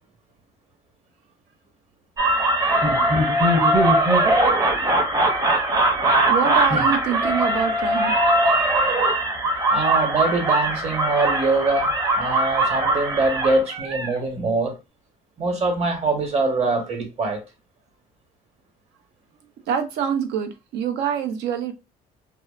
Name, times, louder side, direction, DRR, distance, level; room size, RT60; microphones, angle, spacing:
sound 1, 2.2-14.1, right 1 dB, 20° right, 0.7 m, -20 dB
voice 1, 6.3-8.2 19.7-21.7, right 8 dB, 85° right, 0.6 m, -25 dB
voice 2, 9.7-14.8 15.4-17.4, right 3 dB, 40° right, 1.0 m, -23 dB
2.7 x 2.1 x 2.4 m
cardioid pair, 110°, 17 cm